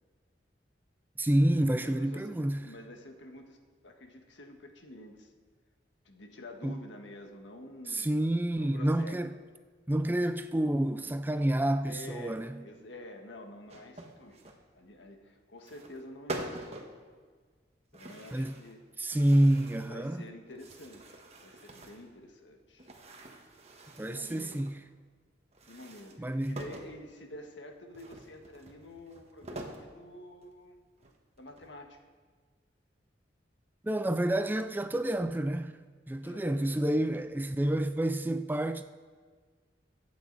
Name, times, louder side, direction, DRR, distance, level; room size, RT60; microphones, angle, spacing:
voice 1, 1.2-2.7 6.6-6.8 7.9-9.4 9.9-12.6 18.3-18.6 19.0-20.2 24.0-24.8 26.2-26.6 33.8-35.7 36.1-38.8, right 1 dB, 10° right, 0.4 m, -28 dB
voice 2, 1.8-3.6 3.8-5.3 6.0-8.2 8.5-9.2 11.8-14.4 14.7-16.7 17.9-18.8 19.8-22.9 24.0-24.7 25.7-30.8 31.4-32.0 36.2-36.8, left 1 dB, 85° left, 1.6 m, -48 dB
sound 1, 13.7-14.6 15.6-16.0 16.3-17.0 17.9-18.8 19.1-20.0 20.5-22.1 22.8-24.7 25.5-26.9 27.9-29.9 30.4-30.5 31.0-31.8, right 1 dB, 35° right, 1.3 m, -45 dB
23.0 x 8.6 x 4.0 m
head